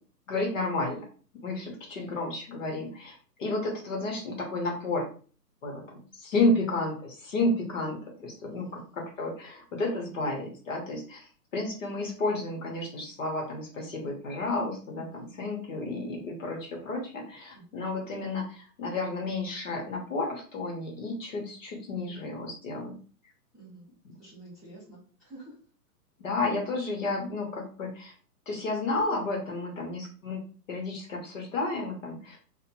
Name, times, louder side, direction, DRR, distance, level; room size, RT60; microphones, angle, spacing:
voice 1, 0.3-1.1 1.4-5.1 5.6-8.7 9.0-11.3 11.5-23.0 26.2-28.1 28.5-30.4 30.7-32.4, left 2 dB, 50° left, 0 dB, 0.9 m, -31 dB
voice 2, 8.5-9.0 15.1-15.4 17.5-17.8 23.5-23.9 24.2-25.5, right 2 dB, ahead, -17 dB, 0.9 m, -50 dB
2.7 x 2.1 x 2.8 m, 0.40 s
hypercardioid pair, 160°, 49 cm